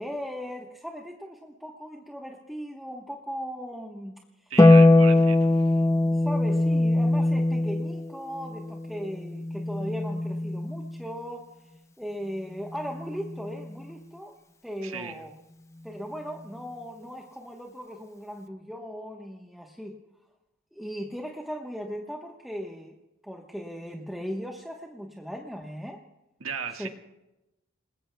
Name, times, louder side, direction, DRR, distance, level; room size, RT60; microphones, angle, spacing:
voice 1, 0.0-4.5 6.1-11.5 12.0-14.3 14.6-15.3 15.8-20.0 20.7-23.0 23.2-26.0 26.8-26.9, equal, ahead, 0 dB, 1.1 m, -38 dB
voice 2, 4.5-5.8 14.8-15.2 26.4-26.9, right 6 dB, 85° right, 4 dB, 1.6 m, -36 dB
Harp, 4.6-11.1 12.7-13.7, left 2 dB, 15° left, 0.6 m, -22 dB
28.5 x 20.5 x 2.3 m, 0.96 s
head